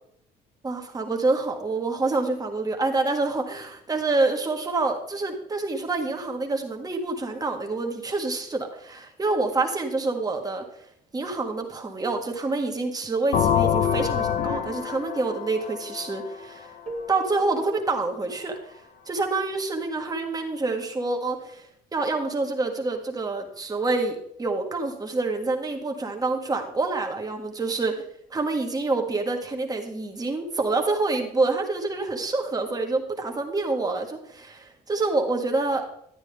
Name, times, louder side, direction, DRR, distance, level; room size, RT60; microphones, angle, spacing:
voice 1, 0.6-10.6 11.1-16.7 17.1-18.6 19.1-21.7 21.9-27.9 28.3-35.8, right 3 dB, 20° right, 3 dB, 1.6 m, -27 dB
sound 1, 13.3-17.0, left 9 dB, 80° left, 1.0 m, -26 dB
Keyboard (musical), 16.9-18.9, left 3 dB, 40° right, 1.8 m, -40 dB
11.5 x 9.6 x 3.4 m, 0.71 s
cardioid pair, 110°, 17 cm